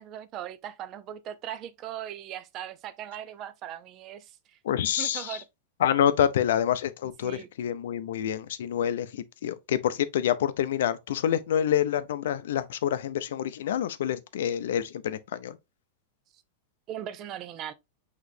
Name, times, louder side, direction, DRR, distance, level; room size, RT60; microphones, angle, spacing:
voice 1, 0.0-4.6 5.0-5.4 7.2-7.5 16.9-17.7, right 10 dB, 35° right, 0.5 m, -39 dB
voice 2, 4.6-5.4 5.8-15.6, left 10 dB, 80° left, 0.6 m, -27 dB
6.1 x 2.9 x 2.6 m
supercardioid pair, 150°, 0 cm